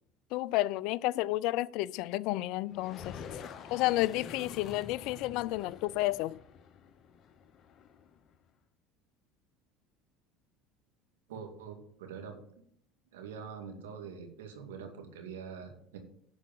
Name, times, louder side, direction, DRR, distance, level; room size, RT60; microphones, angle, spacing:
voice 1, 0.3-3.2 3.7-6.4, left 17 dB, 65° left, 0.3 m, -31 dB
sound 1, 2.7-8.4, left 7 dB, 45° left, 1.0 m, -47 dB
voice 2, 11.3-12.4 13.1-16.0, right 6 dB, 85° right, 2.1 m, -44 dB
11.0 x 4.7 x 7.6 m
hypercardioid pair, 85°, 0 cm